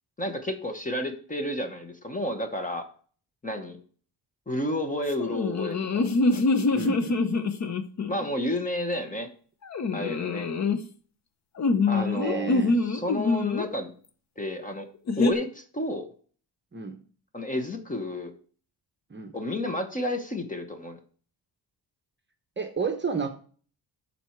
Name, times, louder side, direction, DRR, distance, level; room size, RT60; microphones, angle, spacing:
voice 1, 0.2-2.9 3.4-3.8 4.5-6.6 8.1-9.3 9.9-10.5 11.9-12.6 12.8-13.9 14.4-14.9 15.2-16.1 17.3-18.3 19.3-21.0, left 1 dB, 20° left, 6 dB, 1.0 m, -31 dB
sound 1, 5.2-8.2 9.7-10.8 11.6-13.7 15.1-15.3, left 3 dB, 40° left, 0.7 m, -25 dB
voice 2, 6.7-7.2 11.9-12.8 16.7-17.0 19.1-19.4 22.6-23.3, right 5 dB, 25° right, 6 dB, 0.8 m, -31 dB
12.0 x 4.2 x 4.5 m, 0.44 s
wide cardioid pair, 175°, 42 cm